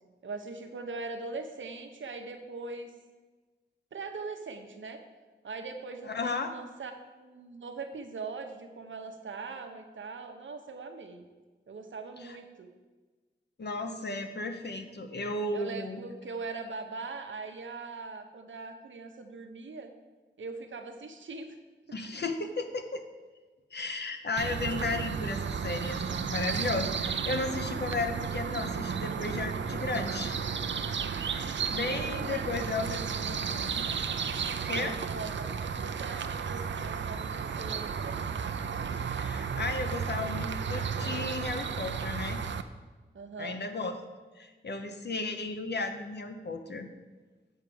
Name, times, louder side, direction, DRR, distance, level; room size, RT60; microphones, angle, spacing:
voice 1, 0.2-2.9 3.9-5.0 5.4-11.2 11.7-12.7 15.5-19.9 20.4-21.6 31.9-33.6 34.6-38.2 43.1-43.6, right 4 dB, 90° right, 5 dB, 0.9 m, -41 dB
voice 2, 6.0-6.5 12.2-12.4 13.6-16.0 21.9-23.0 23.7-30.4 31.3-33.8 34.6-35.0 39.1-42.4 43.4-43.9 44.4-46.9, left 3 dB, 60° left, 6 dB, 0.9 m, -34 dB
sound 1, 24.4-42.6, right 6 dB, 70° right, 0.5 m, -33 dB
7.8 x 4.7 x 7.0 m, 1.3 s
wide cardioid pair, 85°, 19 cm